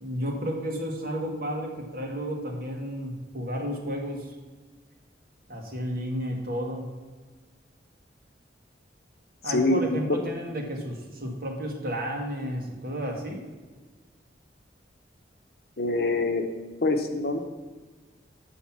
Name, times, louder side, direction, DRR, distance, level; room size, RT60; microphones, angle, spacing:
voice 1, 0.0-4.3 5.5-6.9 9.4-13.4, equal, 55° right, 1 dB, 1.5 m, -32 dB
voice 2, 9.4-10.2 15.8-16.4 16.8-17.4, left 2 dB, 55° left, 6 dB, 0.9 m, -25 dB
6.4 x 5.9 x 7.2 m, 1.3 s
head